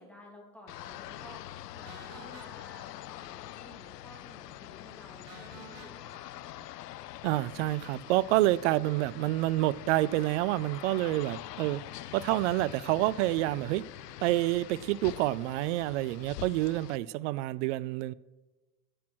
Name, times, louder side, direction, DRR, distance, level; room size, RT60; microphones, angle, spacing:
voice 1, 0.0-6.7, left 1 dB, 5° left, 3.0 m, -53 dB
sound 1, 0.7-17.0, left 14 dB, 75° left, 0.5 m, -45 dB
sound 2, 1.8-3.8 4.0-4.1 4.5-4.6 5.3-7.6, right 3 dB, 30° right, 3.0 m, -54 dB
voice 2, 7.2-11.8 12.1-13.8 14.2-18.1, right 17 dB, 50° right, 0.4 m, -28 dB
16.0 x 6.3 x 6.2 m
figure-of-eight pair, 80°, 49 cm